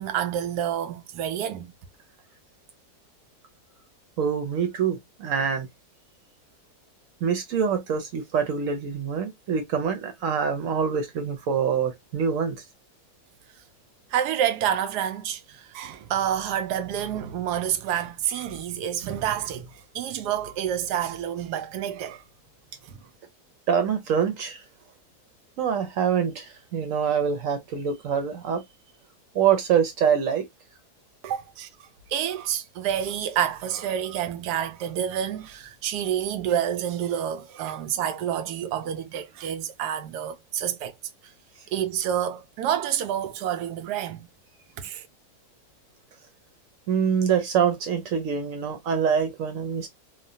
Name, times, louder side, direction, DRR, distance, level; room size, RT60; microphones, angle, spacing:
voice 1, 0.0-1.7 14.1-22.2 31.2-31.7 32.1-40.9 41.7-44.3 44.8-45.1, right 10 dB, 90° right, 1.1 m, -28 dB
voice 2, 4.2-5.7 7.2-12.6 23.7-24.6 25.6-28.6 29.3-30.5 46.9-49.9, right 7 dB, 65° right, 1.0 m, -25 dB
3.0 x 2.2 x 2.7 m
omnidirectional pair, 1.7 m